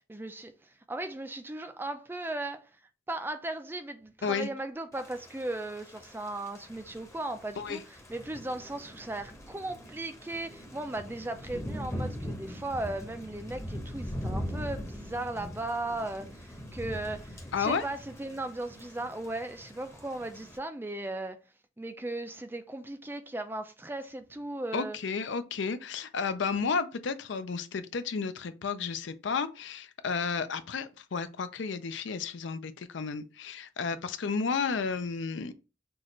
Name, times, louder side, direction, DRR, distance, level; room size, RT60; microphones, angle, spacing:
voice 1, 0.1-2.7 3.1-21.4 21.8-25.0, right 2 dB, 10° right, 0.3 m, -37 dB
Thunder / Rain, 4.9-20.6, equal, 15° left, 0.8 m, -41 dB
voice 2, 17.5-17.8 24.7-35.5, left 5 dB, 65° left, 0.5 m, -32 dB
6.1 x 2.5 x 3.0 m
head